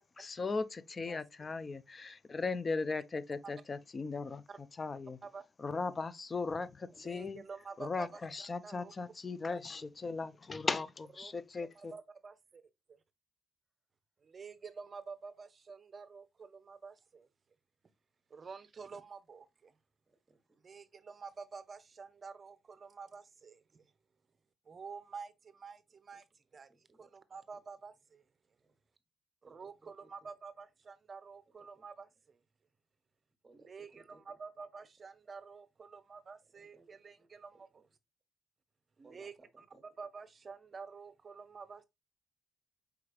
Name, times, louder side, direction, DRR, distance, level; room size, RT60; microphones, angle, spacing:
voice 1, 0.2-4.4 4.8-5.2 5.6-7.4 7.8-11.9, left 4 dB, 35° left, 0.4 m, -37 dB
voice 2, 7.0-8.2 8.6-8.9 9.5-9.6 11.2-11.3 11.6-12.6 12.9-13.0 14.2-17.3 18.3-19.7 20.6-23.8 24.7-26.3 26.5-26.7 27.0-28.2 29.4-32.4 33.5-37.9 39.0-39.7 40.0-41.8, right 5 dB, 40° right, 0.6 m, -49 dB
voice 3, 20.3-20.6 26.7-27.1 28.6-28.7 29.4-30.1 31.8-31.9 33.4-34.2 36.5-37.3 37.5-37.6 39.0-39.8, right 3 dB, 15° right, 1.1 m, -63 dB
4.8 x 3.2 x 2.4 m
cardioid pair, 90°, 0 cm